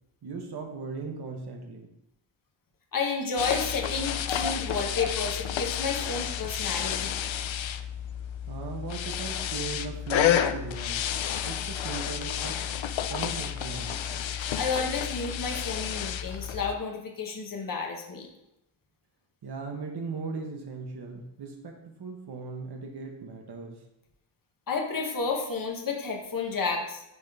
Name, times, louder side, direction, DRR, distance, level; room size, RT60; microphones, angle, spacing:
voice 1, 0.2-1.9 8.5-11.1 11.4-12.6 13.1-14.3 19.4-23.8, right 4 dB, 50° right, 2 dB, 1.0 m, -38 dB
voice 2, 2.9-7.2 14.6-18.3 24.7-27.0, left 4 dB, 40° left, 1 dB, 1.1 m, -31 dB
sound 1, 3.4-16.7, left 10 dB, 70° left, 0.5 m, -30 dB
11.0 x 3.6 x 3.5 m, 0.84 s
wide cardioid pair, 165°, 49 cm